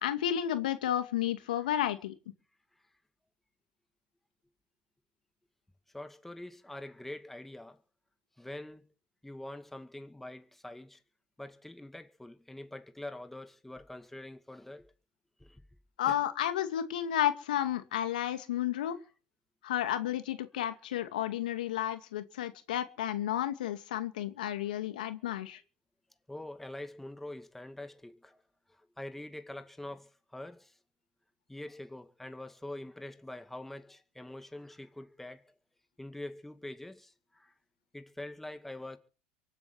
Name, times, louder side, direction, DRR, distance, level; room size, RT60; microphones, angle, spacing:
voice 1, 0.0-2.1 16.0-19.0 19.6-25.6, left 11 dB, 85° left, 2.4 m, -32 dB
voice 2, 5.9-7.8 8.4-8.8 9.2-11.0 11.4-14.9 15.4-15.6 16.1-16.2 24.4-24.6 26.3-28.4 28.7-30.8 31.5-35.5 36.0-37.5 37.9-39.0, left 1 dB, 5° left, 2.2 m, -45 dB
24.0 x 9.1 x 6.2 m
hypercardioid pair, 95°, 4 cm